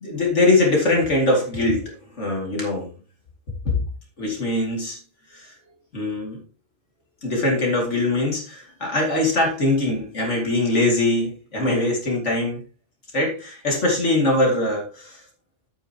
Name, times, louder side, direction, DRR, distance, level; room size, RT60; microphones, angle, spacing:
voice 1, 0.0-2.9 3.6-3.7 4.2-5.0 5.3-5.5 5.9-6.4 7.2-12.6 13.1-15.2, left 2 dB, 80° left, -1 dB, 2.7 m, -22 dB
11.5 x 8.9 x 2.9 m, 0.36 s
omnidirectional pair, 1.2 m